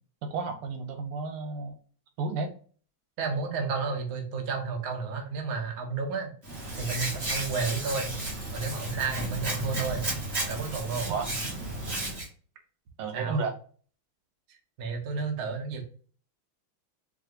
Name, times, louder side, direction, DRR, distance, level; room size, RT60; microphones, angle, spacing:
voice 1, 0.2-1.8 2.2-2.5 11.1-11.3 13.0-13.5, right 4 dB, 85° right, 6 dB, 1.7 m, -32 dB
voice 2, 3.2-6.3 6.7-8.1 8.5-10.0 10.5-11.1 13.1-13.5 14.8-15.8, right 5 dB, 55° right, 3 dB, 1.1 m, -32 dB
Hands, 6.4-12.3, right 2 dB, 30° right, 1.6 m, -33 dB
4.8 x 2.7 x 2.8 m, 0.42 s
omnidirectional pair, 2.3 m